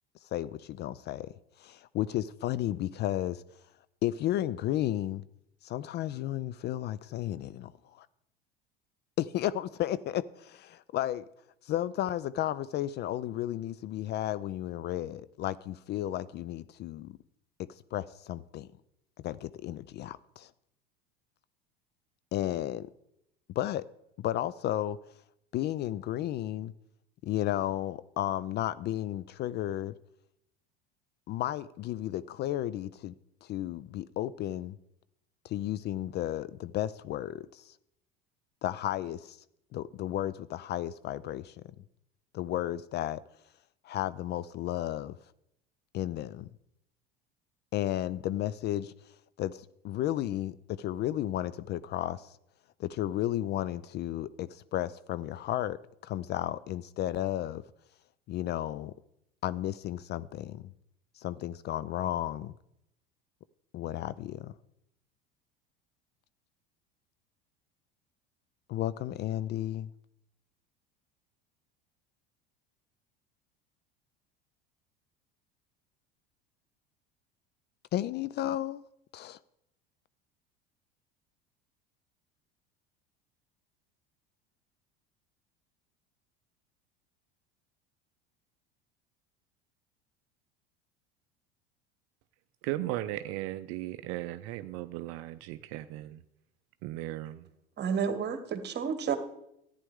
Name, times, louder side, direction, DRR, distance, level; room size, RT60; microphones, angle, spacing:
voice 1, 0.3-1.3 1.6-3.4 4.0-5.2 5.6-8.1 9.2-11.2 11.7-17.1 17.9-18.7 19.2-20.5 22.3-22.9 23.6-23.8 24.2-25.0 25.5-26.7 27.2-29.9 31.3-33.1 33.4-34.7 35.4-37.7 38.6-39.4 39.7-41.6 42.3-43.2 43.8-45.1 45.9-46.5 47.7-48.9 49.4-52.3 52.8-55.8 56.0-57.6 58.3-58.9 59.4-60.6 61.2-62.5 63.7-64.5 68.7-69.9 77.9-78.8 79.1-79.4, left 13 dB, 35° left, 0.4 m, -33 dB
voice 2, 92.6-96.2 96.8-97.5, right 15 dB, 50° right, 0.6 m, -36 dB
voice 3, 97.8-99.2, right 7 dB, 35° right, 1.4 m, -30 dB
14.0 x 9.8 x 3.6 m
hypercardioid pair, 75°, 30 cm